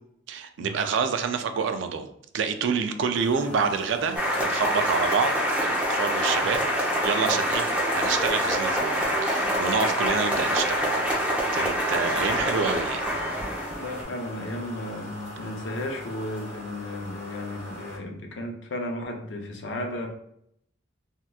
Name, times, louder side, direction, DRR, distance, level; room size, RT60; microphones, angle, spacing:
voice 1, 0.3-2.1 2.3-5.3 5.6-7.7 7.9-10.9 11.5-13.0, right 5 dB, 65° right, 8 dB, 0.3 m, -27 dB
sound 1, 3.1-18.0, left 1 dB, 15° left, 1.2 m, -41 dB
sound 2, 4.2-14.0, equal, 5° right, 0.7 m, -26 dB
voice 2, 13.7-20.1, left 1 dB, 65° left, 2 dB, 0.6 m, -34 dB
3.3 x 2.8 x 2.3 m, 0.72 s
head